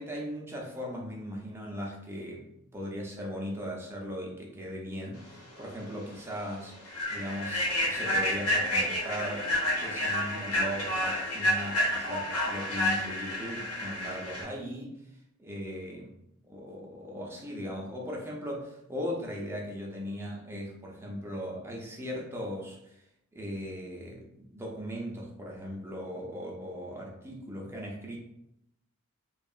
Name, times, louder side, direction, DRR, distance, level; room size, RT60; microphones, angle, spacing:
voice 1, 0.0-2.5 2.7-6.7 7.1-15.0 15.4-16.1 16.5-23.0 23.3-28.2, equal, 10° right, -2 dB, 0.4 m, -38 dB
Human voice / Train, 5.6-5.7 6.1-6.3 6.8-14.4, left 1 dB, 90° left, 0.7 m, -30 dB
2.7 x 2.3 x 2.3 m, 0.80 s
head